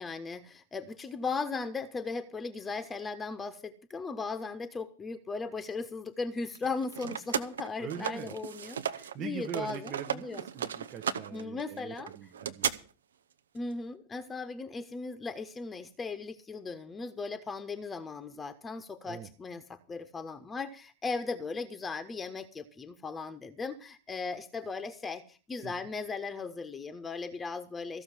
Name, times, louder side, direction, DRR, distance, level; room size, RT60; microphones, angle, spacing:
voice 1, 0.0-10.5 11.3-12.1 13.5-28.0, left 4 dB, 15° left, 11 dB, 1.2 m, -37 dB
sound 1, 6.5-9.1 9.4-12.7, right 8 dB, 65° right, 0.9 m, -35 dB
voice 2, 7.8-8.3 9.1-12.7 19.0-19.3 25.6-25.7, right 9 dB, 35° right, 5 dB, 1.1 m, -42 dB
15.0 x 6.9 x 8.2 m, 0.37 s
figure-of-eight pair, 90°, 0 cm